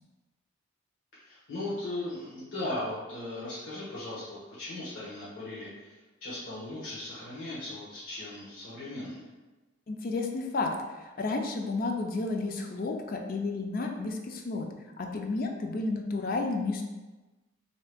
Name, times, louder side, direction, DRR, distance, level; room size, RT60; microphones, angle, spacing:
voice 1, 1.2-9.2, left 1 dB, 65° left, -9 dB, 0.9 m, -38 dB
voice 2, 9.9-10.7 11.0-14.7 15.0-16.8, left 3 dB, 45° left, 3 dB, 0.4 m, -31 dB
3.2 x 2.7 x 3.4 m, 1.2 s
head